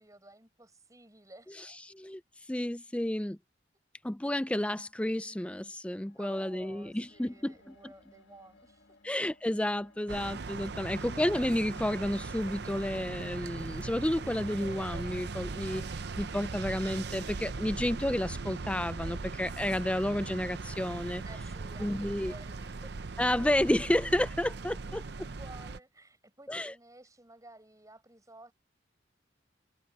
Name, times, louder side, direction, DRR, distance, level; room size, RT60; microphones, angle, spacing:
voice 1, 0.0-1.6 6.2-9.0 21.2-23.0 24.8-28.5, right 2 dB, 20° right, 6.9 m, -54 dB
voice 2, 1.9-2.2 2.5-3.4 4.0-7.9 9.0-15.8 16.2-21.2 21.8-22.3 23.2-25.0 26.5-26.7, left 1 dB, 5° left, 0.4 m, -31 dB
sound 1, 6.0-15.5 16.3-16.4, left 1 dB, 75° left, 1.5 m, -59 dB
sound 2, 10.1-25.8, right 4 dB, 60° right, 0.7 m, -39 dB
head